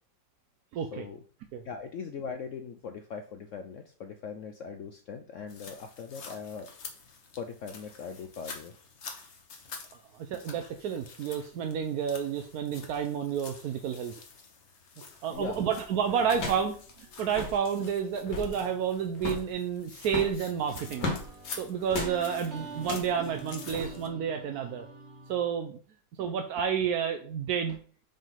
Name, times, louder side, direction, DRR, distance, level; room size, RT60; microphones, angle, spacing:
voice 1, 0.7-1.0 1.5-1.6 10.1-14.1 15.2-21.1 21.6-24.9 25.3-25.8 26.2-27.8, right 7 dB, 70° right, 5 dB, 1.0 m, -30 dB
voice 2, 1.6-6.7 7.4-8.7 15.3-15.8, left 6 dB, 85° left, 5 dB, 0.6 m, -40 dB
sound 1, 5.5-24.1, left 5 dB, 45° left, 1.1 m, -48 dB
sound 2, 15.3-15.6 16.3-16.7 17.0-17.1 17.2-17.6 18.1-18.6 19.2-19.5 20.0-21.3 21.9-22.2 22.8-23.1 23.7-23.9, left 3 dB, 65° left, 2.1 m, -35 dB
sound 3, 19.8-25.5, right 4 dB, 40° right, 1.5 m, -47 dB
5.3 x 3.6 x 5.7 m, 0.43 s
omnidirectional pair, 2.0 m